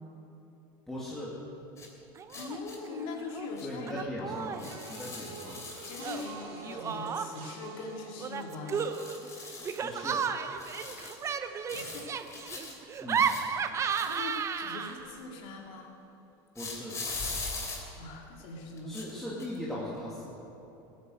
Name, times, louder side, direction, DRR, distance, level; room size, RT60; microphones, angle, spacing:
voice 1, 0.9-1.4 3.6-4.6 4.9-5.6 9.8-10.2 13.0-13.4 16.6-17.0 18.9-20.3, left 1 dB, 5° left, -7 dB, 2.2 m, -39 dB
sound 1, 1.8-1.9 2.3-2.8 3.6-3.7 4.6-6.3 8.7-9.8 10.6-11.2 11.7-12.7 13.1-14.6 16.6-17.8 18.8-19.1 19.4-19.6, left 3 dB, 25° left, 2.9 m, -41 dB
Laughter, 2.1-2.6 2.9-3.5 3.9-4.7 6.0-7.5 8.2-15.2, right 6 dB, 25° right, 0.7 m, -33 dB
voice 2, 2.3-4.7 5.8-8.9 11.7-12.1 14.1-15.9 18.0-19.0, left 3 dB, 55° left, 0 dB, 2.5 m, -41 dB
sound 2, 4.5-13.8 14.1-14.7 15.5-15.6, right 4 dB, 50° right, 4.5 m, -51 dB
17.0 x 9.4 x 7.8 m, 3.0 s
supercardioid pair, 135°, 12 cm